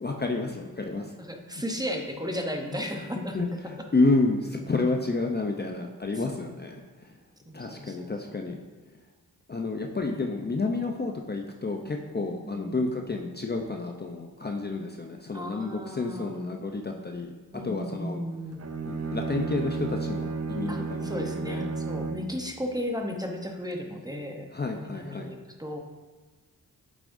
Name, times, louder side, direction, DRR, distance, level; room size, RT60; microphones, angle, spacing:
voice 1, 0.0-1.1 2.9-7.1 7.5-8.6 9.5-17.3 17.6-18.2 18.8-21.7 24.5-25.3, left 3 dB, 25° left, 2 dB, 0.6 m, -30 dB
voice 2, 1.2-3.8 6.3-6.4 7.5-8.4 10.2-10.3 12.4-12.8 15.3-16.3 17.5-18.6 20.7-24.5 24.8-25.8, equal, 10° right, 2 dB, 0.8 m, -35 dB
Bowed string instrument, 18.5-22.4, right 4 dB, 40° right, 0.6 m, -32 dB
8.3 x 7.1 x 2.6 m, 1.3 s
cardioid pair, 75°, 38 cm